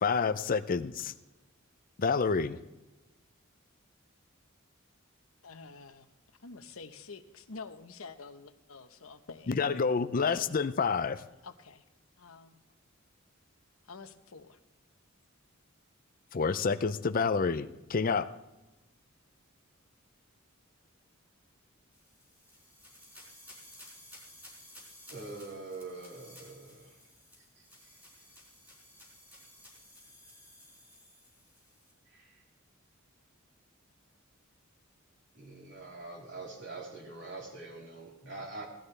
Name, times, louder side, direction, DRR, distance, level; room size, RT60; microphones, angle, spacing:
voice 1, 0.0-1.1 2.0-2.6 9.5-11.2 16.3-18.3, left 5 dB, 40° left, 0.5 m, -28 dB
voice 2, 5.4-6.1 6.4-9.6 11.4-11.8 12.2-12.6 13.8-14.6, left 4 dB, 85° left, 0.9 m, -48 dB
sound 1, 21.9-31.9, left 1 dB, 10° right, 4.7 m, -55 dB
voice 3, 25.1-26.9 32.1-32.3 35.4-38.7, right 3 dB, 60° right, 3.5 m, -44 dB
18.0 x 13.0 x 3.3 m
head